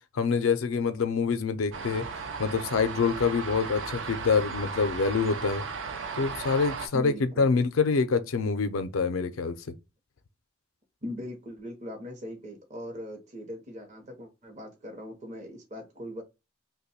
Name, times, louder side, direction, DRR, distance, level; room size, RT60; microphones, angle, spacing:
voice 1, 0.2-2.0 2.4-5.7 6.2-9.5, left 5 dB, 90° left, 0.5 m, -26 dB
sound 1, 1.7-6.9, right 4 dB, 65° right, 0.5 m, -36 dB
voice 2, 6.9-7.5 11.0-16.2, left 1 dB, 35° right, 0.7 m, -40 dB
2.9 x 2.2 x 4.1 m
head